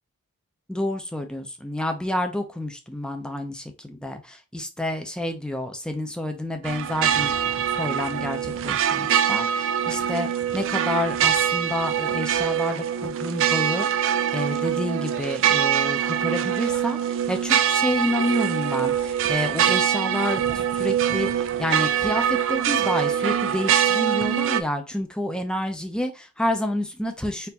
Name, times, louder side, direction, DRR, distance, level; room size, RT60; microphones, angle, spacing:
voice 1, 0.7-7.3 7.7-10.3 10.5-27.5, left 1 dB, 5° left, 5 dB, 0.6 m, -29 dB
sound 1, 6.6-24.6, right 9 dB, 60° right, 0.4 m, -24 dB
4.4 x 2.6 x 4.0 m, 0.28 s
head